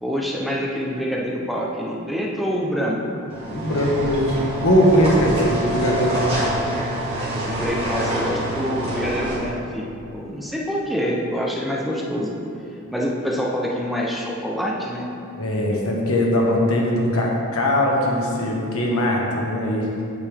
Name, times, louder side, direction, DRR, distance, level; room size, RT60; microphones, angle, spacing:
voice 1, 0.0-3.0 6.3-6.4 7.4-12.3 12.9-15.1, equal, ahead, -3 dB, 0.7 m, -26 dB
sound 1, 3.3-9.4, right 1 dB, 25° right, 2.0 m, -26 dB
voice 2, 3.5-4.4 4.6-6.5 15.4-19.9, equal, 70° left, -2 dB, 1.3 m, -20 dB
8.5 x 6.9 x 3.5 m, 2.6 s
head